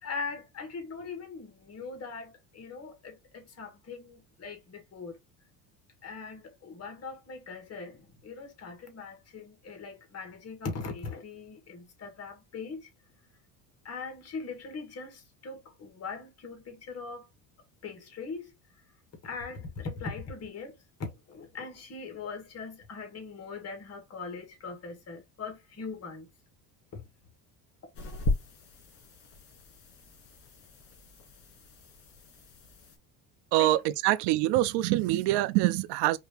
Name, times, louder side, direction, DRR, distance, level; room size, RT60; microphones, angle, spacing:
voice 1, 0.0-5.2 6.0-12.9 13.8-17.3 17.8-18.5 19.2-26.3 26.9-27.0 33.6-33.7, left 4 dB, 35° left, 1.9 m, -40 dB
sound 1, 27.9-33.0, left 2 dB, 65° left, 2.3 m, -37 dB
voice 2, 33.5-36.2, right 16 dB, 70° right, 0.7 m, -25 dB
4.6 x 2.8 x 3.3 m
cardioid pair, 115°, 42 cm